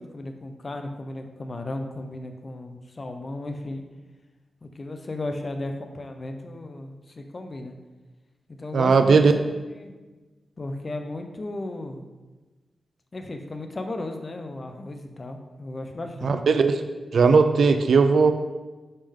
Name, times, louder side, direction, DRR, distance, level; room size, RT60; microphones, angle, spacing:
voice 1, 0.0-3.8 4.6-7.7 8.5-9.9 10.6-12.0 13.1-16.4, left 2 dB, 30° left, 5 dB, 0.6 m, -35 dB
voice 2, 8.7-9.3 16.2-16.8 17.1-18.3, right 4 dB, 65° right, 8 dB, 0.4 m, -18 dB
9.5 x 3.7 x 3.6 m, 1.2 s
wide cardioid pair, 175°, 0 cm